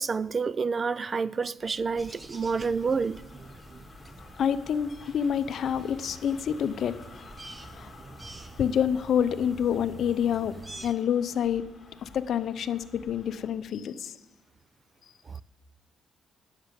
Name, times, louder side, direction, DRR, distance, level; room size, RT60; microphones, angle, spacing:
voice 1, 0.0-3.2 15.3-15.4, right 5 dB, 35° right, 0.4 m, -29 dB
sound 1, 1.6-13.7, left 4 dB, 40° left, 1.9 m, -52 dB
sound 2, 2.0-10.9, right 2 dB, 20° right, 0.9 m, -47 dB
voice 2, 4.4-7.0 7.7-7.9 8.6-11.7 12.0-14.2, left 8 dB, 65° left, 0.6 m, -27 dB
10.0 x 7.4 x 9.1 m
cardioid pair, 90°, 0 cm